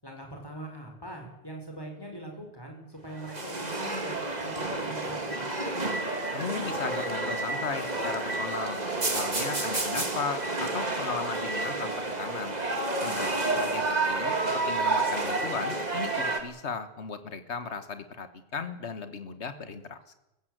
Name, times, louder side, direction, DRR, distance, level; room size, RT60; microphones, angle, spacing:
voice 1, 0.0-5.5, right 1 dB, 20° left, 2 dB, 5.3 m, -42 dB
sound 1, 3.1-16.4, right 2 dB, 40° right, 2.3 m, -30 dB
voice 2, 6.3-12.6 13.0-20.1, left 5 dB, 80° left, 10 dB, 1.8 m, -36 dB
25.5 x 15.5 x 8.0 m, 0.93 s
omnidirectional pair, 1.1 m